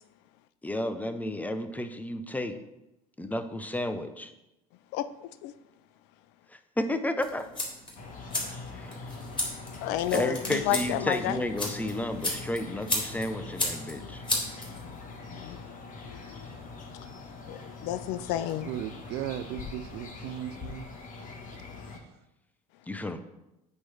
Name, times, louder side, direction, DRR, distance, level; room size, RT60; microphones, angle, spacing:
voice 1, 0.6-2.6 3.2-4.3 6.5-7.5 8.7-9.0 10.1-14.2 22.9-23.2, left 1 dB, 10° left, 9 dB, 0.6 m, -32 dB
voice 2, 4.9-5.5 9.8-11.4 14.8-14.9 15.3-15.7 16.1-16.5 17.5-18.7, left 13 dB, 60° left, 14 dB, 0.4 m, -31 dB
sound 1, 7.2-15.2, left 2 dB, 25° left, 2.6 m, -35 dB
sound 2, 8.0-22.0, left 4 dB, 45° left, 1.2 m, -43 dB
voice 3, 18.7-20.9 21.9-22.0, right 12 dB, 60° right, 13 dB, 0.4 m, -36 dB
7.9 x 3.1 x 5.6 m, 0.92 s
hypercardioid pair, 70°, 19 cm